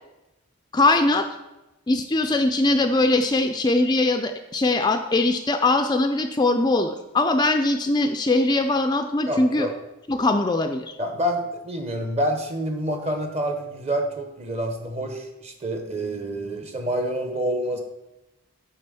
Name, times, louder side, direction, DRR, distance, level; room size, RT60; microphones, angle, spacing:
voice 1, 0.7-1.3 1.9-9.7 10.1-10.9, left 2 dB, 20° left, 6 dB, 0.4 m, -21 dB
voice 2, 9.3-9.7 11.0-17.8, right 1 dB, 30° right, 5 dB, 1.0 m, -27 dB
8.8 x 3.5 x 6.8 m, 0.98 s
head